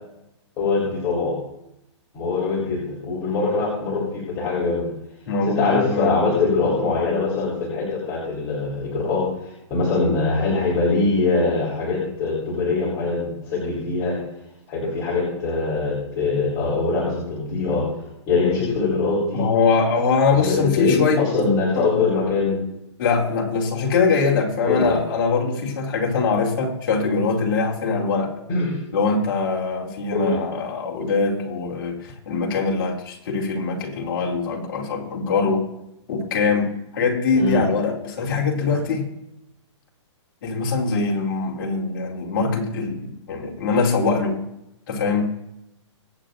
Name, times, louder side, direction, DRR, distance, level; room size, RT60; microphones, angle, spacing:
voice 1, 0.6-1.3 2.1-4.9 5.4-14.1 14.7-17.8 18.3-19.4 20.4-22.6 24.7-24.9 28.5-28.7 30.1-30.4 37.3-37.6, left 3 dB, 20° left, -6 dB, 3.4 m, -23 dB
voice 2, 5.3-6.1 19.3-21.2 21.8-22.0 23.0-28.3 28.9-35.7 36.1-39.1 40.4-44.4 44.9-45.3, left 4 dB, 40° left, -1 dB, 2.8 m, -22 dB
24.0 x 8.3 x 2.6 m, 0.84 s
hypercardioid pair, 165°, 16 cm